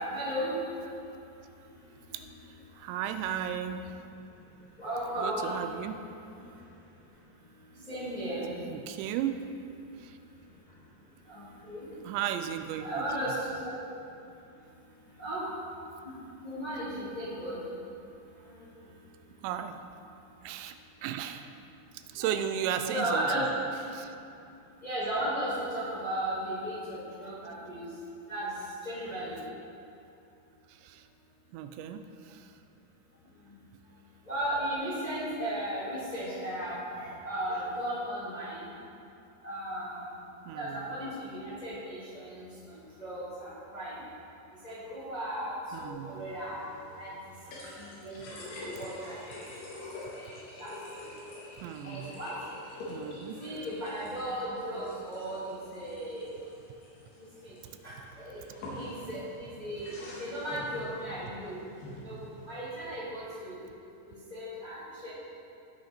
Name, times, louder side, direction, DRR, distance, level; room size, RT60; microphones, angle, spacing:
voice 1, 0.1-0.5 4.8-5.7 7.9-8.5 11.3-11.8 12.8-13.7 15.2-15.5 16.4-17.6 22.1-22.3 22.9-23.5 24.8-27.8 28.3-28.5 28.8-29.4 34.3-38.6 39.4-40.0 40.5-42.5 43.0-44.0 44.6-45.5 45.8-46.6 46.9-47.1 47.8-48.2 48.8-49.2 50.6-50.7 51.8-52.3 53.4-56.3 57.4-57.5 57.8-58.3 58.7-61.6 62.0-63.5 64.1-64.8 65.0-65.1, right 1 dB, 15° left, -10 dB, 1.7 m, -35 dB
voice 2, 2.1-4.1 5.2-6.0 7.8-7.9 8.5-9.4 10.0-10.2 12.0-13.0 19.4-19.8 20.4-20.8 21.0-21.5 21.9-23.3 23.9-24.1 30.7-31.1 31.5-32.5 40.5-40.9 45.7-46.2 51.6-52.1 52.9-53.4, right 9 dB, 90° right, 8 dB, 2.8 m, -35 dB
sound 1, 45.9-62.9, left 1 dB, 70° left, 3.8 m, -46 dB
16.0 x 5.7 x 4.3 m, 2.7 s
omnidirectional pair, 5.0 m